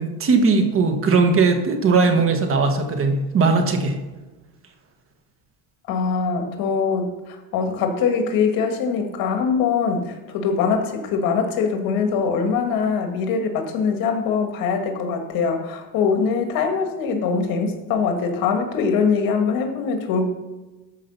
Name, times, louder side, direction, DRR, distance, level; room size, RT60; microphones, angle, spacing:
voice 1, 0.0-4.0, right 4 dB, 35° right, 5 dB, 1.3 m, -19 dB
voice 2, 5.9-20.2, left 5 dB, 65° left, 5 dB, 1.9 m, -22 dB
13.0 x 4.9 x 5.7 m, 1.2 s
cardioid pair, 150°, 38 cm